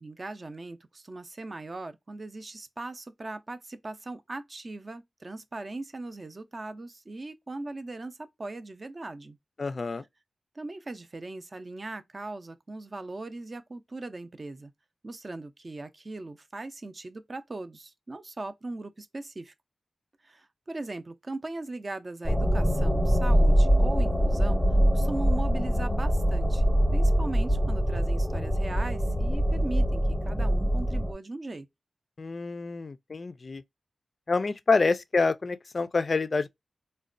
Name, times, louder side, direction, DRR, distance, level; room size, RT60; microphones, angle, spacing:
voice 1, 0.0-9.4 10.6-14.7 15.0-19.5 20.2-24.6 24.9-26.6 26.9-31.7, right 2 dB, 35° right, 0.4 m, -39 dB
voice 2, 9.6-10.0 32.2-33.6 34.3-36.5, left 4 dB, 45° left, 0.3 m, -27 dB
sound 1, 22.2-31.1, equal, ahead, 0.8 m, -24 dB
3.9 x 2.1 x 2.4 m
wide cardioid pair, 120°, 0 cm